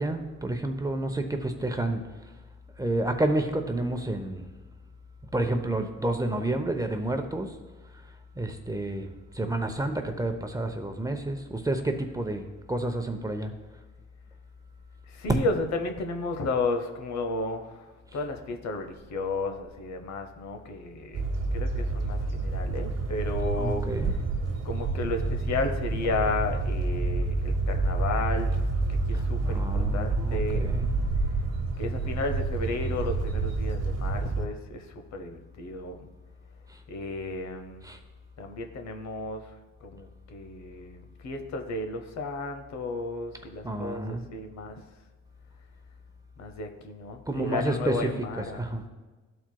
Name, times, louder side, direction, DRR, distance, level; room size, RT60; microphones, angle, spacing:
voice 1, 0.0-2.0 2.8-4.4 5.3-7.5 8.4-13.5 15.3-15.4 23.6-24.1 29.1-30.9 36.7-36.8 37.8-38.0 43.6-44.2 47.3-48.8, right 2 dB, 10° right, 5 dB, 0.7 m, -30 dB
voice 2, 15.1-17.9 18.1-21.2 21.5-23.8 24.6-28.5 29.1-30.6 31.8-34.8 35.1-36.1 36.9-37.8 38.4-39.5 39.8-44.8 46.4-48.6, left 3 dB, 65° left, 6 dB, 0.9 m, -33 dB
sound 1, 21.1-34.5, right 3 dB, 55° right, 1.0 m, -28 dB
13.0 x 4.5 x 2.3 m, 1.3 s
cardioid pair, 90°, 30 cm